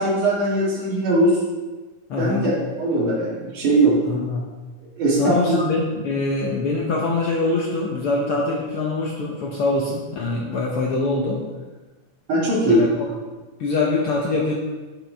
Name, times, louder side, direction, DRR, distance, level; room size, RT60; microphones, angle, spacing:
voice 1, 0.0-1.4 2.2-4.0 5.0-5.6 12.3-12.9, right 1 dB, 75° right, -6 dB, 4.0 m, -20 dB
voice 2, 2.1-2.4 4.1-4.5 5.2-11.5 12.7-12.9 13.6-14.5, left 3 dB, 65° left, -2 dB, 1.4 m, -23 dB
10.0 x 7.6 x 3.5 m, 1.2 s
omnidirectional pair, 3.6 m